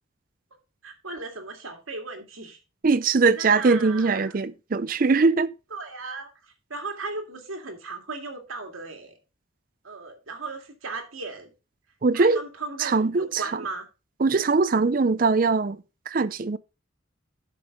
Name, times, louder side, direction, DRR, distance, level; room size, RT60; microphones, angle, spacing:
voice 1, 0.8-2.6 3.3-4.3 5.7-6.3 6.7-9.2 9.8-11.5 12.1-13.9, right 3 dB, 90° right, 2.2 m, -36 dB
voice 2, 2.8-5.5 12.0-12.4 12.8-13.4 14.2-15.8 16.1-16.6, right 4 dB, 45° right, 0.5 m, -21 dB
11.5 x 5.3 x 3.7 m
head